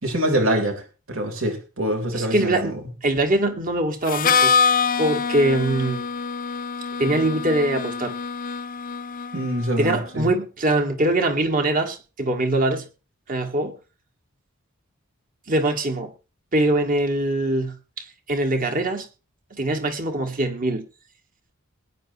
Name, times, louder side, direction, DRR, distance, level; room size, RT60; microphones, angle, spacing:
voice 1, 0.0-2.8 9.3-10.3, right 1 dB, 70° right, 3.7 m, -25 dB
voice 2, 2.1-2.7 3.0-4.5 5.0-6.0 7.0-8.1 9.8-12.9 13.3-13.8 15.5-16.1 16.5-19.1 19.5-20.8, right 1 dB, 40° right, 2.0 m, -23 dB
Harmonica, 4.1-9.8, left 5 dB, 40° left, 0.6 m, -24 dB
21.0 x 9.5 x 3.0 m
head